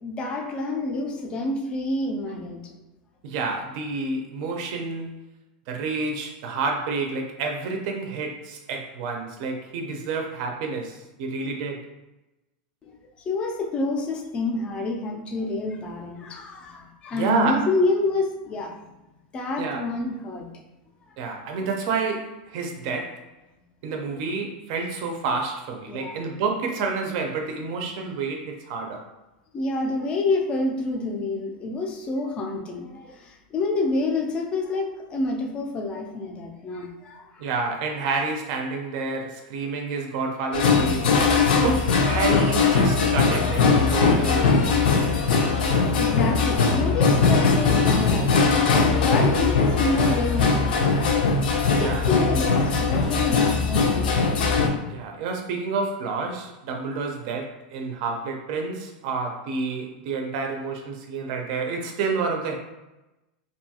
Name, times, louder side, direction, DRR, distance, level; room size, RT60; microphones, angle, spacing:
voice 1, 0.0-2.7 12.8-13.0 13.3-18.9 19.3-20.6 25.9-26.2 29.5-37.5 46.0-51.2 51.7-54.9, left 2 dB, 20° left, 1 dB, 0.4 m, -28 dB
voice 2, 3.2-5.1 5.7-11.9 17.1-17.6 19.6-19.8 21.2-23.3 23.8-29.0 37.4-41.1 41.5-45.2 51.8-52.0 54.9-62.6, right 4 dB, 50° right, 3 dB, 0.4 m, -29 dB
sound 1, 40.5-54.7, left 4 dB, 80° left, 0.5 m, -20 dB
2.6 x 2.3 x 2.8 m, 1.0 s
supercardioid pair, 160°, 5 cm